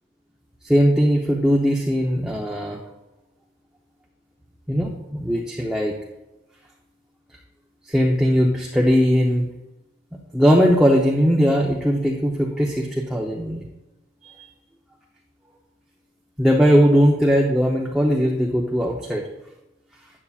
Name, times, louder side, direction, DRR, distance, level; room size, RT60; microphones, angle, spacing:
voice 1, 0.6-2.8 4.7-5.9 7.9-9.5 10.3-13.6 16.4-19.2, equal, 5° right, -2 dB, 0.7 m, -19 dB
12.5 x 8.5 x 2.4 m, 0.99 s
head